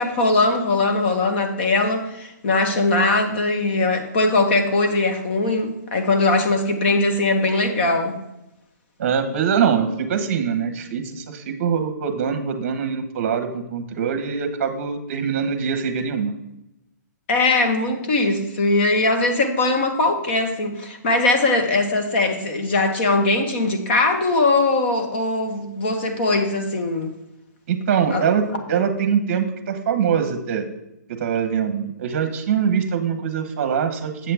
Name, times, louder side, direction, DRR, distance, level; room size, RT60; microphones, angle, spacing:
voice 1, 0.0-8.1 17.3-27.1 28.1-28.2, left 2 dB, 35° left, 5 dB, 1.2 m, -20 dB
voice 2, 9.0-16.3 27.7-30.6 31.1-34.3, right 7 dB, 40° right, 7 dB, 1.1 m, -23 dB
7.8 x 7.4 x 3.5 m, 0.87 s
hypercardioid pair, 165°, 10 cm